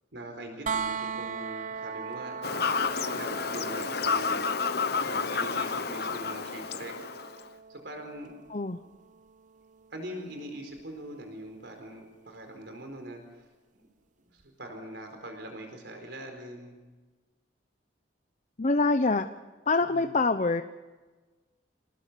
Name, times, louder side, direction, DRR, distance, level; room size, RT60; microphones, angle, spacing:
voice 1, 0.1-2.8 3.1-7.0 7.7-8.5 9.9-13.5 13.7-13.9 14.2-16.8 19.9-20.1, right 1 dB, 70° right, 4 dB, 4.4 m, -42 dB
sound 1, 0.7-12.5 14.4-14.5, right 5 dB, 40° right, 0.7 m, -40 dB
Fowl / Bird vocalization bird call bird song, 2.4-7.4, left 5 dB, 60° left, 1.0 m, -30 dB
voice 2, 18.6-19.3 19.7-20.6, left 3 dB, 40° left, 9 dB, 0.8 m, -25 dB
27.5 x 19.5 x 6.9 m, 1.3 s
head